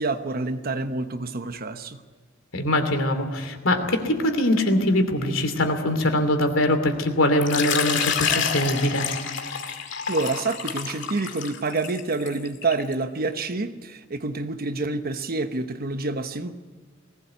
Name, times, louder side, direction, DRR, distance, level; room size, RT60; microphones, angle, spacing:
voice 1, 0.0-2.0 10.1-16.5, right 3 dB, 50° right, 1.1 m, -28 dB
voice 2, 2.5-9.1, left 1 dB, 85° left, 2.8 m, -22 dB
Water / Liquid, 7.4-12.9, left 7 dB, 65° left, 2.1 m, -28 dB
19.5 x 17.5 x 8.1 m
head